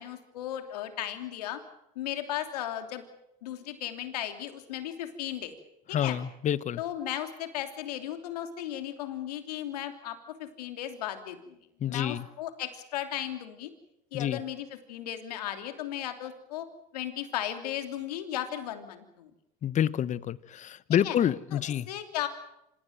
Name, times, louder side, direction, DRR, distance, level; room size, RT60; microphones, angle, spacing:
voice 1, 0.0-1.6 1.9-3.0 3.4-5.5 5.9-6.2 6.8-13.7 14.1-16.7 16.9-19.3 21.0-21.2 21.5-21.6 21.9-22.3, left 11 dB, 90° left, 7 dB, 3.1 m, -36 dB
voice 2, 5.9-6.8 11.8-12.3 14.1-14.4 19.6-21.9, left 10 dB, 40° left, 19 dB, 1.0 m, -28 dB
26.5 x 16.5 x 9.1 m, 0.86 s
supercardioid pair, 95°, 20 cm